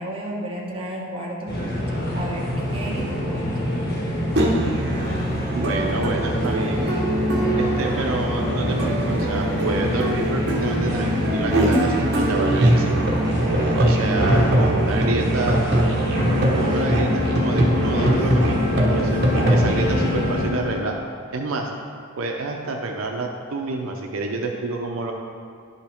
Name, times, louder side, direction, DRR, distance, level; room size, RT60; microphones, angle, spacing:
voice 1, 0.0-1.5 2.1-3.7, right 1 dB, 25° right, -4 dB, 1.3 m, -32 dB
sound 1, 1.5-20.5, equal, 50° left, 1.6 m, -26 dB
Musical instrument, 4.4-19.8, right 1 dB, 55° right, 1.0 m, -22 dB
voice 2, 5.5-6.9 7.5-13.0 13.7-15.9 16.4-20.9 21.3-21.7 22.2-25.1, right 3 dB, 75° right, 2 dB, 0.6 m, -28 dB
Wind instrument woodwind instrument, 15.9-20.9, left 7 dB, 20° left, 1.6 m, -30 dB
11.0 x 5.5 x 3.5 m, 2.3 s
head